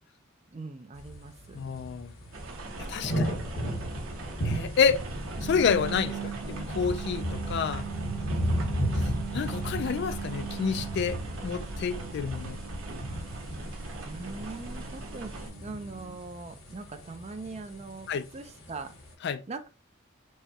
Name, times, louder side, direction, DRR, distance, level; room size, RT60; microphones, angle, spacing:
voice 1, 0.5-1.6 3.1-3.5 8.3-8.9 14.0-19.0 19.5-19.7, right 3 dB, 30° right, 0.4 m, -41 dB
sound 1, 0.9-19.1, equal, 90° left, 1.1 m, -35 dB
voice 2, 1.5-2.1 2.9-3.4 4.4-5.0 5.4-6.2 6.7-7.8 9.3-12.6 18.1-18.3 19.2-19.4, left 6 dB, 55° left, 0.3 m, -28 dB
sound 2, 2.3-15.5, right 2 dB, 85° right, 0.9 m, -41 dB
sound 3, 5.3-16.1, right 9 dB, 50° right, 1.2 m, -41 dB
4.7 x 2.1 x 2.8 m
head